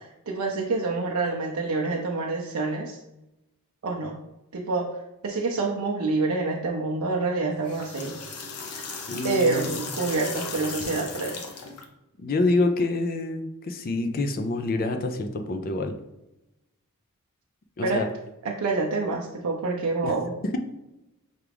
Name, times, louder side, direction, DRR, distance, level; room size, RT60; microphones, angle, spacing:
voice 1, 0.0-3.0 3.8-4.2 4.5-4.9 5.2-8.2 9.2-11.4 17.8-18.1 18.4-20.3, right 3 dB, 70° right, -1 dB, 0.5 m, -27 dB
sound 1, 7.5-11.8, left 4 dB, 80° left, 0.7 m, -36 dB
voice 2, 9.1-9.8 12.2-15.9 17.8-18.1 20.0-20.1, left 2 dB, 40° left, 6 dB, 0.4 m, -27 dB
5.9 x 2.4 x 3.4 m, 0.94 s
head